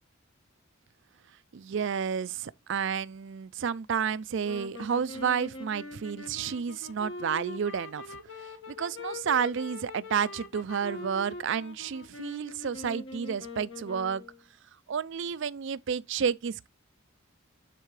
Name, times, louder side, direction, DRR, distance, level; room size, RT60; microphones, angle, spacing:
voice 1, 1.5-8.2 8.7-14.2 14.9-16.7, right 7 dB, 60° right, 0.4 m, -31 dB
sound 1, 4.4-14.4, left 3 dB, 60° left, 1.4 m, -43 dB
10.0 x 3.8 x 3.1 m
head